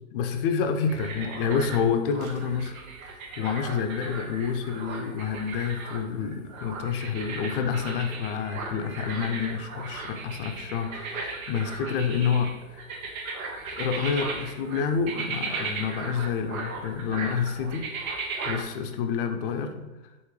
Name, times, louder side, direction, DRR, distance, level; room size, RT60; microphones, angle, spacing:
voice 1, 0.1-2.7 3.0-12.8 13.8-17.9 18.4-19.9, left 6 dB, 45° left, 5 dB, 0.4 m, -28 dB
sound 1, 0.9-18.6, right 3 dB, 80° right, 0.8 m, -37 dB
3.1 x 2.6 x 3.6 m, 1.1 s
hypercardioid pair, 145°, 41 cm